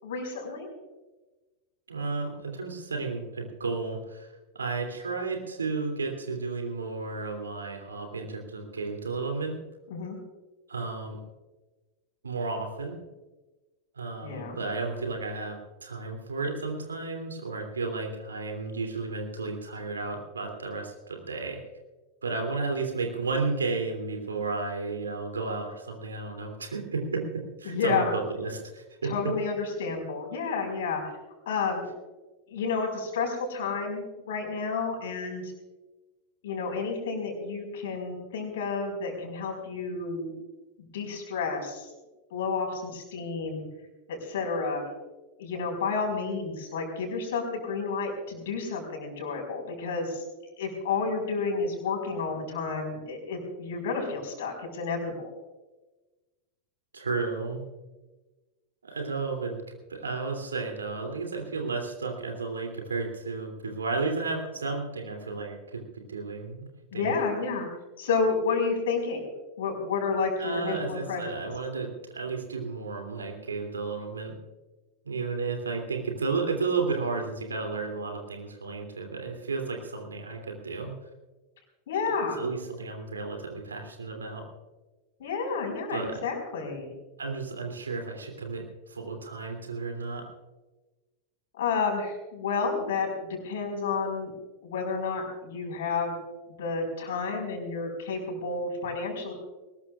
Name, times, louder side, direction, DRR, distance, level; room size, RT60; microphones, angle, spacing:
voice 1, 0.0-0.7 9.9-10.2 14.2-14.6 27.7-28.1 29.0-31.0 31.4-31.9 32.5-35.5 36.4-40.3 40.8-41.9 42.3-43.6 44.1-44.8 45.4-50.2 50.6-55.3 66.9-67.7 68.0-69.2 69.6-71.4 81.9-82.4 85.2-86.9 91.6-94.3 94.6-96.2 96.5-99.3, left 4 dB, 60° left, 2 dB, 4.9 m, -30 dB
voice 2, 1.9-9.6 10.7-11.2 12.2-13.0 13.9-21.6 22.2-29.3 56.9-57.6 58.8-67.1 70.4-74.4 75.0-80.9 82.4-84.5 85.9-86.2 87.2-90.3, right 4 dB, 75° right, 3 dB, 3.0 m, -33 dB
21.5 x 20.0 x 2.5 m, 1.1 s
figure-of-eight pair, 90°, 0 cm